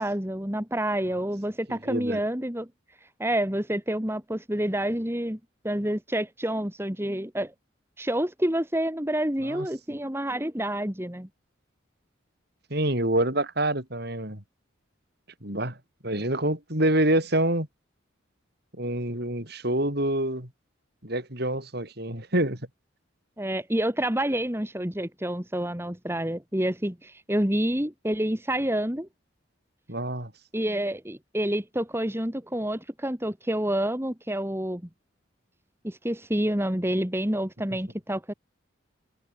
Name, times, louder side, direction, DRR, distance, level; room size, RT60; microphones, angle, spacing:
voice 1, 0.0-2.7 3.2-5.4 5.6-7.5 8.0-11.3 23.4-29.1 30.5-34.8 35.8-38.3, right 1 dB, 10° right, 2.2 m, -28 dB
voice 2, 1.7-2.2 9.5-9.7 12.7-14.4 15.4-15.8 16.0-17.7 18.8-20.5 21.0-22.6 29.9-30.3, right 1 dB, 55° right, 7.9 m, -26 dB
head